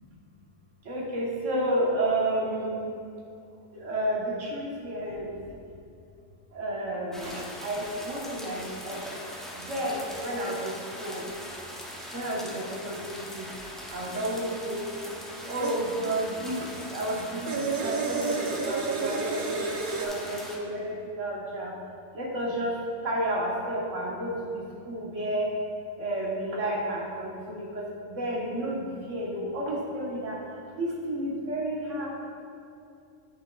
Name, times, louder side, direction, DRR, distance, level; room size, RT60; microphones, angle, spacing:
voice 1, 0.9-2.8 3.7-5.3 6.5-9.0 9.6-10.7 11.0-11.2 12.1-13.5 13.9-14.8 15.5-16.6 16.9-18.4 18.6-19.7 20.0-21.7 22.1-22.7 23.0-24.6 24.9-25.5 26.0-27.8 28.1-30.3 30.8-32.1, right 1 dB, 90° right, -4 dB, 1.5 m, -31 dB
sound 1, 7.1-20.6, equal, ahead, 0.4 m, -41 dB
sound 2, 14.2-15.8 16.7-20.1, right 4 dB, 55° right, 0.6 m, -32 dB
8.0 x 6.1 x 2.3 m, 2.5 s
omnidirectional pair, 1.2 m